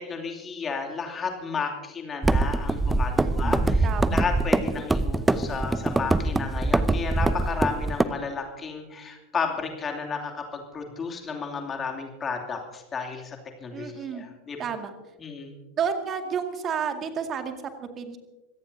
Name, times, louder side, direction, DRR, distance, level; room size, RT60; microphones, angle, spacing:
voice 1, 0.1-14.6 15.2-15.5, left 5 dB, 25° left, 2 dB, 2.7 m, -33 dB
sound 1, 2.2-8.0, right 2 dB, 10° right, 0.7 m, -23 dB
voice 2, 3.2-4.2 13.7-14.2 14.6-14.9 15.8-18.2, right 7 dB, 30° right, 6 dB, 2.1 m, -31 dB
26.0 x 17.5 x 2.7 m, 1.1 s
figure-of-eight pair, 85°, 0 cm